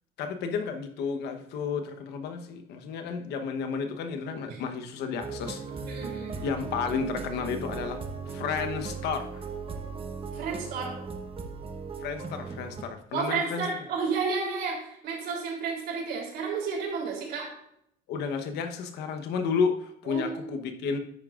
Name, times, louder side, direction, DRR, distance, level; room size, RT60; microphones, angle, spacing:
voice 1, 0.2-6.0 6.4-8.0 8.3-9.5 12.0-13.6 18.1-21.0, left 5 dB, 80° left, 7 dB, 1.1 m, -32 dB
sound 1, 5.2-12.8, right 5 dB, 35° right, 1.1 m, -37 dB
voice 2, 5.8-6.4 10.3-10.9 13.1-17.5 20.1-20.5, right 5 dB, 70° right, -1 dB, 3.3 m, -32 dB
10.0 x 8.4 x 2.5 m, 0.75 s
cardioid pair, 110°, 17 cm